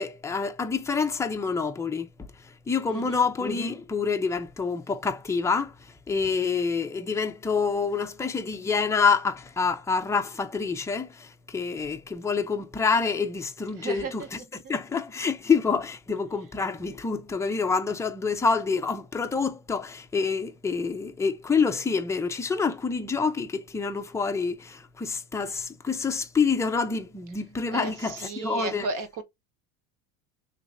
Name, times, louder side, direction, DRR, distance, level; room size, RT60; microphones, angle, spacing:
voice 1, 0.0-28.9, left 5 dB, 5° left, 0.5 m, -27 dB
voice 2, 2.9-3.3 13.8-14.3 14.5-14.7 27.7-29.2, right 4 dB, 45° right, 1.2 m, -34 dB
3.2 x 2.8 x 3.6 m
supercardioid pair, 95°, 43 cm